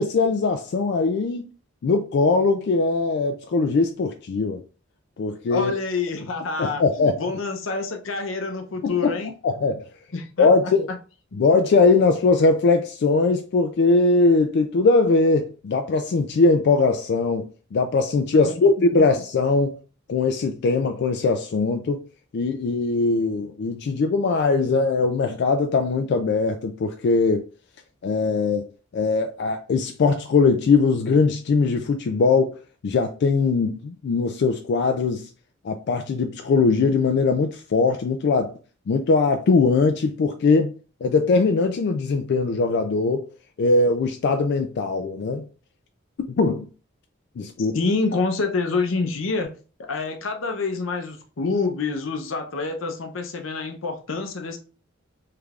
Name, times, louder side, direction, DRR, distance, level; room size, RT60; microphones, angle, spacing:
voice 1, 0.0-1.4 1.8-4.6 5.2-5.7 6.6-7.2 8.8-9.1 9.4-9.9 10.4-10.9 11.3-17.5 17.7-19.8 20.1-22.0 22.3-27.4 28.0-28.7 28.9-32.5 32.8-35.3 35.6-38.5 38.9-40.7 41.0-43.3 43.6-45.4 46.4-46.7 47.4-47.8, left 3 dB, 60° left, 0.3 m, -20 dB
voice 2, 5.5-9.3 10.1-11.0 18.3-18.6 47.6-49.6 49.9-54.6, left 4 dB, 85° left, 0.7 m, -27 dB
3.3 x 3.3 x 2.4 m
head